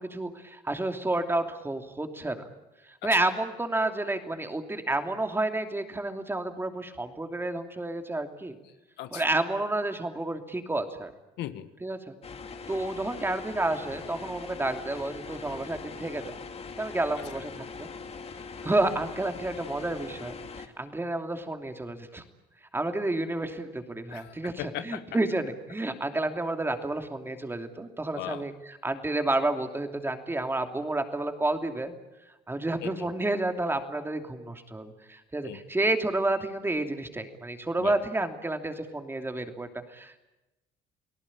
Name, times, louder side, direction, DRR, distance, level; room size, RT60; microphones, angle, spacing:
voice 1, 0.0-2.4 3.0-8.6 9.1-11.1 11.8-12.1 12.7-16.3 16.8-17.9 18.6-22.2 22.7-28.5 28.8-31.9 32.5-40.2, right 2 dB, 15° right, 6 dB, 2.9 m, -30 dB
voice 2, 8.6-9.3 11.4-11.7 24.1-25.0 28.1-28.5 32.8-33.1 35.4-35.6 37.8-37.9, left 13 dB, 85° left, 11 dB, 1.5 m, -38 dB
sound 1, 12.2-20.7, left 4 dB, 35° left, 2.3 m, -41 dB
29.5 x 18.5 x 8.8 m, 1.0 s
cardioid pair, 110°, 17 cm